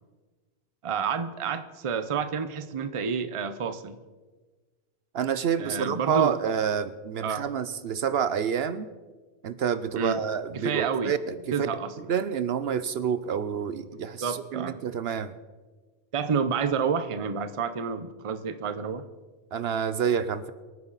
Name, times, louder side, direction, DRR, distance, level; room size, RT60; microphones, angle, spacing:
voice 1, 0.8-4.0 5.6-6.3 7.2-7.5 10.0-10.2 10.5-11.2 11.5-11.9 14.2-14.8 16.1-19.0, right 6 dB, 35° right, 11 dB, 0.6 m, -29 dB
voice 2, 5.1-8.9 9.4-11.3 12.1-15.3 19.5-20.5, right 7 dB, 65° right, 13 dB, 0.8 m, -28 dB
25.5 x 9.5 x 4.0 m, 1.3 s
omnidirectional pair, 1.2 m